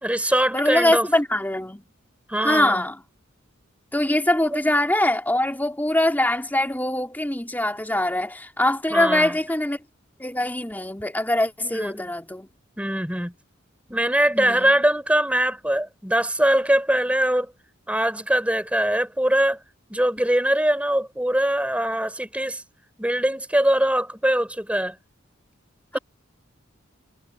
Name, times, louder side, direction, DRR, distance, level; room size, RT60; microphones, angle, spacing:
voice 1, 0.0-1.1 2.3-2.9 4.5-4.6 8.9-9.4 11.6-12.1 12.8-13.3 13.9-17.5 17.9-19.6 19.9-22.6 23.0-25.0 25.9-26.0, right 1 dB, 5° right, 3.3 m, -22 dB
voice 2, 0.5-1.8 2.4-3.0 3.9-9.8 10.2-12.5 14.3-14.7 25.9-26.0, left 1 dB, 10° left, 2.8 m, -23 dB
head